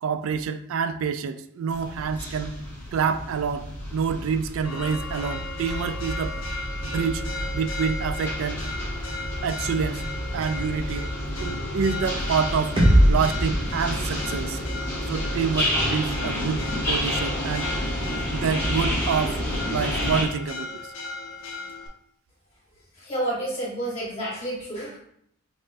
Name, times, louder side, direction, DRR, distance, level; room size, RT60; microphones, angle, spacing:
voice 1, 0.0-2.5 2.9-3.7 3.9-6.4 6.8-7.2 7.5-8.6 9.4-10.0 10.3-11.1 11.4-12.8 13.1-14.6 15.1-17.7 18.3-19.4 19.7-20.9, right 6 dB, 65° right, 10 dB, 0.3 m, -27 dB
sound 1, 1.7-20.2, equal, 10° left, 1.1 m, -30 dB
Church bell, 4.6-21.9, left 3 dB, 65° left, 0.6 m, -36 dB
sound 2, 12.8-16.7, equal, 25° right, 0.7 m, -23 dB
voice 2, 23.0-25.0, right 1 dB, 30° left, -7 dB, 1.4 m, -30 dB
5.5 x 2.1 x 2.7 m, 0.70 s
head